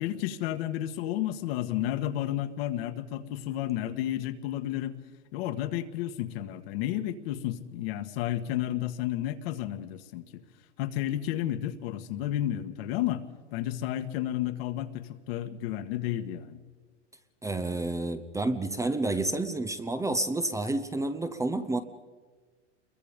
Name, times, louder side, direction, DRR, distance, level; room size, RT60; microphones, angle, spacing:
voice 1, 0.0-5.0 5.3-10.2 10.8-13.2 13.5-16.6, left 12 dB, 55° left, 10 dB, 1.7 m, -32 dB
voice 2, 17.4-21.8, right 2 dB, 10° right, 10 dB, 0.8 m, -29 dB
27.0 x 22.5 x 5.3 m, 1.4 s
hypercardioid pair, 130°, 35 cm